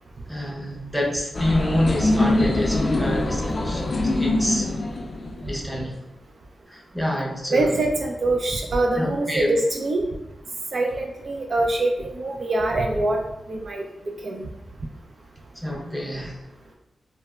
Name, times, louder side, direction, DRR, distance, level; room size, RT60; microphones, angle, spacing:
voice 1, 0.3-4.7 5.4-6.0 6.7-7.8 8.9-9.5 15.5-16.4, left 1 dB, ahead, -1 dB, 0.6 m, -27 dB
sound 1, 1.3-5.8, left 2 dB, 45° left, 0.3 m, -23 dB
voice 2, 7.5-10.0 10.7-13.2 13.5-13.8 14.2-14.5, right 2 dB, 55° right, 1 dB, 0.3 m, -24 dB
3.1 x 2.0 x 2.2 m, 0.89 s
cardioid pair, 60°, 0 cm